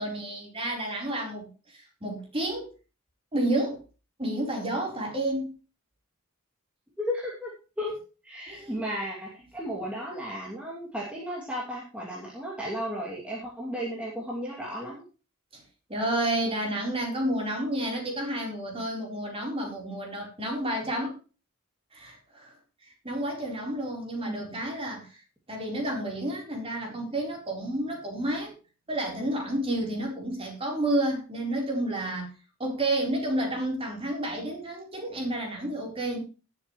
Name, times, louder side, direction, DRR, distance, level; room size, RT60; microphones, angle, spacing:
voice 1, 0.0-2.7 3.3-3.8 4.2-5.5 8.5-8.8 15.5-15.6 15.9-21.1 21.9-22.5 22.8-25.2 25.5-28.5 28.9-32.3 32.6-36.2, right 1 dB, 25° right, -1 dB, 4.2 m, -30 dB
voice 2, 7.0-7.5 7.8-8.0 8.2-15.0 24.3-24.4, equal, 5° right, -5 dB, 2.7 m, -34 dB
18.0 x 7.5 x 3.2 m, 0.34 s
head